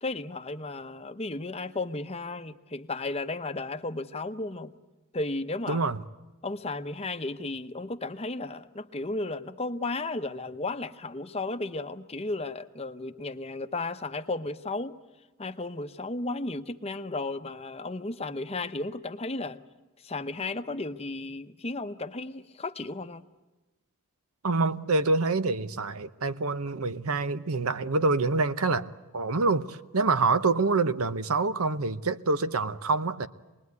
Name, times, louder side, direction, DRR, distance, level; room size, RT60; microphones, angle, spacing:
voice 1, 0.0-4.7 5.1-5.9 6.4-14.9 15.4-19.6 20.0-23.2, left 2 dB, 25° left, 0.8 m, -34 dB
voice 2, 5.7-6.0 24.4-33.3, right 3 dB, 75° right, 0.9 m, -26 dB
26.5 x 20.5 x 9.5 m
head